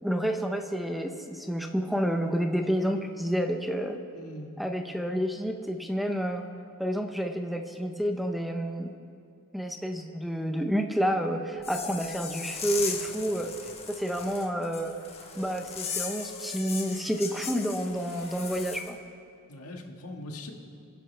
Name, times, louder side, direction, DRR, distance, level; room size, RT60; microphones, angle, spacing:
voice 1, 0.0-4.0 4.6-6.4 6.8-8.9 9.5-13.5 13.9-15.0 15.3-19.0, equal, ahead, 5 dB, 0.7 m, -29 dB
voice 2, 4.1-4.5 19.5-20.5, left 1 dB, 85° left, 2 dB, 1.6 m, -41 dB
sound 1, 11.6-18.9, left 6 dB, 30° left, 1.3 m, -38 dB
30.0 x 10.5 x 3.3 m, 2.6 s
head